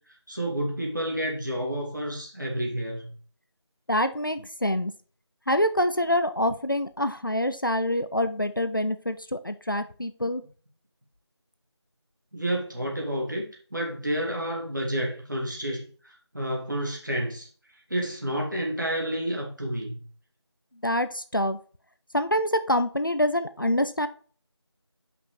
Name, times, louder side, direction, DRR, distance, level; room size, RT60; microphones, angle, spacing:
voice 1, 0.3-3.1 12.3-17.5 17.9-20.0, right 1 dB, 45° right, -1 dB, 2.0 m, -30 dB
voice 2, 3.9-4.9 5.5-10.4 20.8-21.6 22.1-24.1, left 1 dB, 50° left, 11 dB, 0.5 m, -26 dB
5.4 x 5.1 x 4.9 m, 0.41 s
figure-of-eight pair, 175°, 15 cm